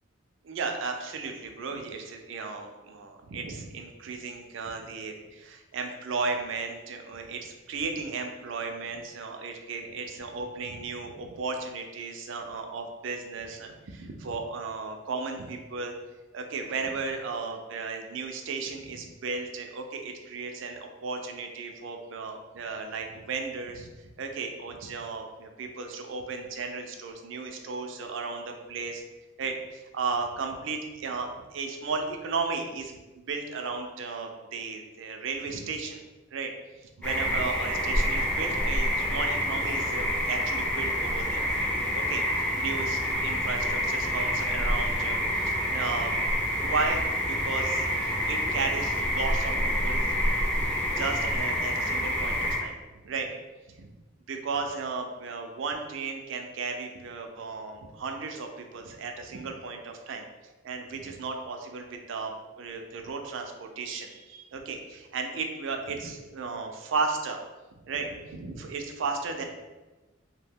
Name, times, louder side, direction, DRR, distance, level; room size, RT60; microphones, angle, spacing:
voice 1, 0.4-15.9 16.3-29.0 29.4-36.0 36.3-36.5 36.8-41.5 41.9-46.2 46.6-50.3 50.6-50.7 51.0-53.3 53.7-53.9 54.3-60.2 60.6-62.3 62.6-67.4 67.9-69.4, right 4 dB, 65° right, 4 dB, 0.4 m, -35 dB
sound 1, 37.0-52.6, equal, 5° left, 0.4 m, -27 dB
2.6 x 2.1 x 3.4 m, 1.2 s
head